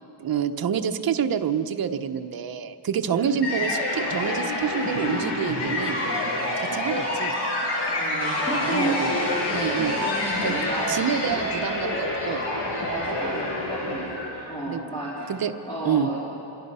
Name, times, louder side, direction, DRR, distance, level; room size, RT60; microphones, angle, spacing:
voice 1, 0.2-6.0 6.6-7.3 8.6-9.1 9.5-9.9 10.4-10.5 10.9-12.4 13.3-13.5 13.8-14.0 14.7-14.8 15.3-15.5 15.8-16.1, right 8 dB, 50° right, 6 dB, 1.0 m, -27 dB
sound 1, 3.4-14.6, left 1 dB, 60° left, 7.1 m, -27 dB
voice 2, 7.9-11.0 12.9-14.1 14.5-15.3 15.7-16.2, right 1 dB, 10° left, -9 dB, 3.8 m, -32 dB
26.0 x 22.5 x 5.6 m, 2.8 s
wide cardioid pair, 175°, 45 cm